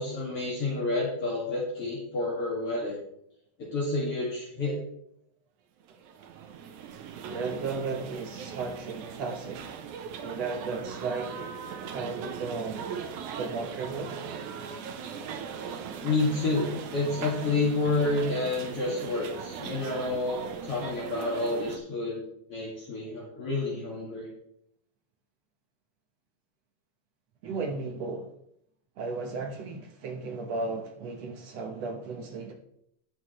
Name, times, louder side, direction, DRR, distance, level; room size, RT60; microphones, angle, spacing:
voice 1, 0.0-2.9 3.6-4.7 16.0-22.2 22.5-24.3, left 2 dB, 50° left, 2.9 m, -29 dB
sound 1, 5.8-21.8, right 6 dB, 85° right, 2.3 m, -39 dB
voice 2, 7.3-9.7 10.2-11.4 11.9-12.9 13.4-14.1 27.4-28.3 29.0-32.5, right 4 dB, 65° right, 2.0 m, -35 dB
18.5 x 6.2 x 3.1 m
omnidirectional pair, 3.4 m